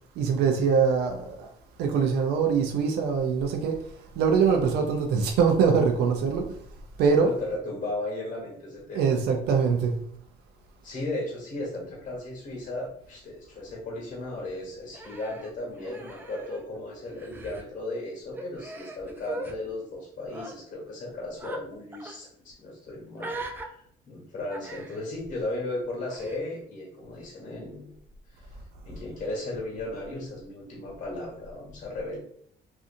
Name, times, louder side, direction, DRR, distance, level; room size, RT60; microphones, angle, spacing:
voice 1, 0.2-1.5 1.8-3.8 4.2-6.6 7.0-7.3 8.9-9.9, right 6 dB, 75° right, 0.4 m, -23 dB
voice 2, 7.2-9.2 10.8-28.0 28.3-28.6 28.8-32.2, left 2 dB, 50° left, 1.3 m, -36 dB
Human voice, 14.9-16.8 17.1-17.6 18.3-19.5 20.2-20.5 21.4-21.6 21.9-22.2 23.2-23.7 24.5-25.0 26.1-26.4, right 2 dB, 10° right, 0.3 m, -40 dB
2.6 x 2.5 x 2.5 m
cardioid pair, 110°, 17 cm